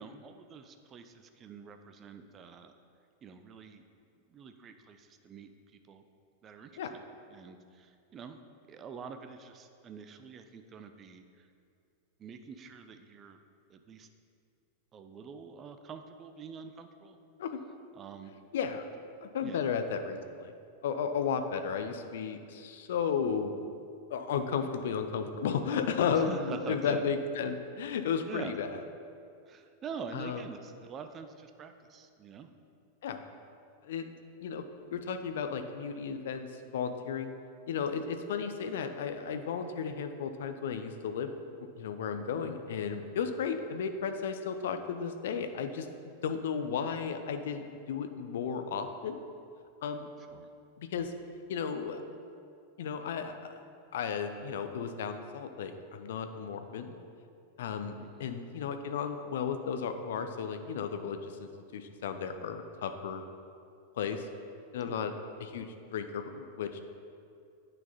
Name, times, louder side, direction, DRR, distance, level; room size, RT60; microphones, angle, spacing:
voice 1, 0.0-2.7 3.2-3.8 4.3-6.0 6.4-6.9 7.3-8.4 8.7-11.5 12.2-13.4 13.7-14.1 14.9-17.2 17.9-18.4 19.4-19.6 26.1-27.0 28.3-28.5 29.5-32.5 50.2-50.5 58.0-58.3 64.9-65.0, right 6 dB, 25° right, 7 dB, 0.6 m, -46 dB
voice 2, 18.5-18.9 19.2-20.5 20.8-23.7 24.1-28.7 30.1-30.4 33.0-33.2 33.8-34.1 34.4-34.6 34.9-36.5 36.7-37.3 37.7-41.3 41.6-49.2 49.8-50.1 50.8-51.1 51.5-52.0 52.8-53.3 53.9-56.9 57.6-57.9 58.2-63.2 64.0-64.3 64.7-65.1 65.4-66.9, left 6 dB, 60° left, 8 dB, 0.6 m, -34 dB
8.7 x 6.6 x 4.2 m, 2.4 s
figure-of-eight pair, 90°, 0 cm